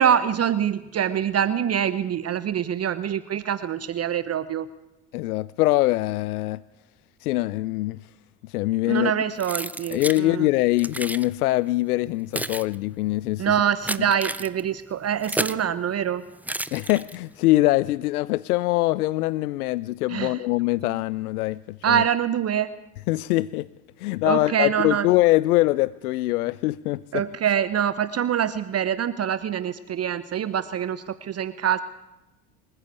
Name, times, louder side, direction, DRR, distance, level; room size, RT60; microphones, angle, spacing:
voice 1, 0.0-4.7 8.9-10.5 13.4-16.2 20.1-20.4 21.8-22.7 24.2-25.1 27.1-31.8, right 9 dB, 35° right, 1.0 m, -25 dB
voice 2, 5.1-6.6 7.2-8.1 8.4-9.1 9.9-13.5 16.7-22.0 23.1-23.7 24.0-27.2, left 18 dB, 80° left, 0.7 m, -23 dB
Keys jangling, 9.4-10.2 10.8-11.3 12.0-15.7 16.4-17.4, right 1 dB, 5° right, 0.9 m, -32 dB
27.0 x 14.5 x 8.2 m
hypercardioid pair, 75°, 44 cm